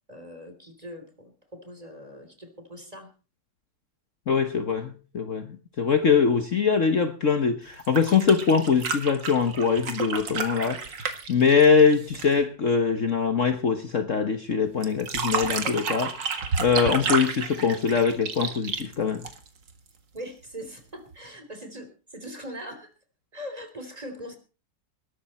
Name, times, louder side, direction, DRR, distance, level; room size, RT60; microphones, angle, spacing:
voice 1, 0.1-3.1 20.1-22.9 23.3-24.4, equal, 20° right, 7 dB, 3.3 m, -41 dB
voice 2, 4.3-19.3, left 6 dB, 50° left, 8 dB, 1.5 m, -23 dB
sound 1, 7.7-12.4 14.8-19.7 21.1-21.2, right 5 dB, 85° right, 2.5 m, -31 dB
20.5 x 12.0 x 4.3 m, 0.36 s
omnidirectional pair, 1.9 m